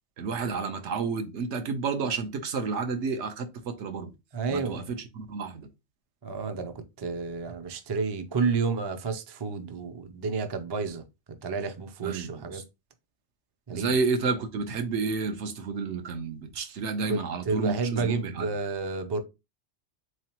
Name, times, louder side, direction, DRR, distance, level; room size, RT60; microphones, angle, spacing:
voice 1, 0.2-4.1 4.5-5.7 12.0-12.6 13.7-18.5, right 4 dB, 80° right, 1.0 m, -31 dB
voice 2, 4.3-4.8 6.2-11.0 11.4-12.6 13.7-13.9 17.1-17.2 17.4-19.2, right 4 dB, 40° right, 0.3 m, -30 dB
3.7 x 3.1 x 2.9 m
omnidirectional pair, 1.2 m